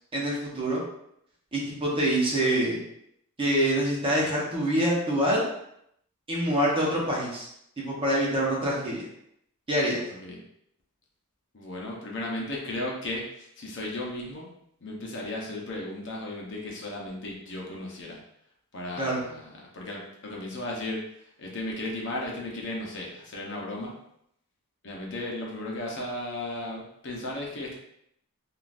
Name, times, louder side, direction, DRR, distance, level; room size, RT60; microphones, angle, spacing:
voice 1, 0.1-0.8 1.5-2.8 3.4-5.4 6.3-7.5 7.8-9.1 9.7-10.0 19.0-19.2, right 1 dB, 25° right, -5 dB, 0.8 m, -25 dB
voice 2, 11.5-14.5 14.8-18.2 18.7-21.0 21.4-23.9 24.8-27.7, left 1 dB, 55° left, -2 dB, 0.7 m, -35 dB
3.7 x 2.4 x 2.4 m, 0.75 s
head